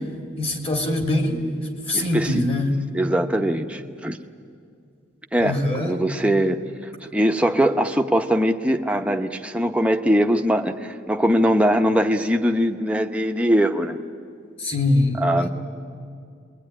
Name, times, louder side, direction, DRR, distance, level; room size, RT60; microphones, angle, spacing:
voice 1, 0.4-1.5 1.9-2.8 5.4-5.9 14.6-15.5, left 2 dB, 30° left, 3 dB, 2.9 m, -23 dB
voice 2, 1.9-2.4 2.9-4.2 5.3-6.6 7.1-14.0 15.2-15.5, equal, 5° right, 4 dB, 0.9 m, -21 dB
27.5 x 21.5 x 9.9 m, 2.3 s
head